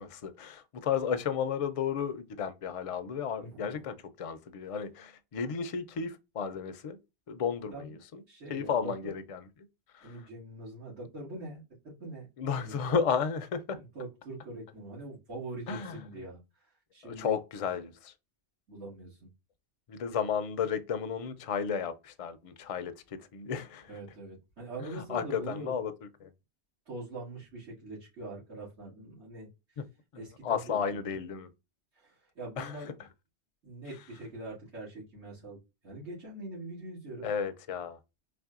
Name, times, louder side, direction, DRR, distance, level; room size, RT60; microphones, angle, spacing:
voice 1, 0.0-7.0 7.3-8.2 8.5-9.5 9.9-10.1 12.4-13.8 15.7-16.0 17.0-18.1 19.9-22.9 23.3-23.9 24.8-25.9 26.2-26.3 29.8-29.9 30.4-31.5 32.6-32.7 37.2-38.0, left 7 dB, 50° left, 0.4 m, -33 dB
voice 2, 3.4-3.9 7.7-7.9 8.3-9.1 10.0-12.3 12.6-12.7 13.7-17.4 18.7-19.3 23.9-25.7 26.9-29.5 30.2-31.1 31.9-32.9 33.6-35.6 35.8-37.3, right 2 dB, 90° right, 2.4 m, -43 dB
4.2 x 3.2 x 2.4 m
omnidirectional pair, 1.1 m